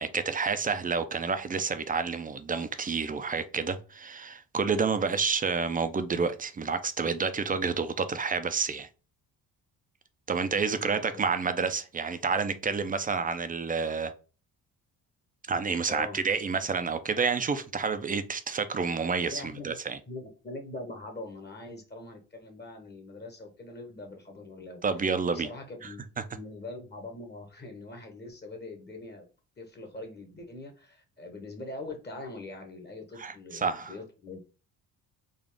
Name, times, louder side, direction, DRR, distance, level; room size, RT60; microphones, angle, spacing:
voice 1, 0.0-8.9 10.3-14.1 15.5-20.0 24.8-25.5 33.2-33.9, right 5 dB, 25° right, 0.5 m, -29 dB
voice 2, 10.5-11.2 15.9-16.2 19.3-19.7 20.1-29.2 29.6-34.4, left 2 dB, 30° left, 1.1 m, -43 dB
3.9 x 2.4 x 3.5 m
cardioid pair, 85°, 34 cm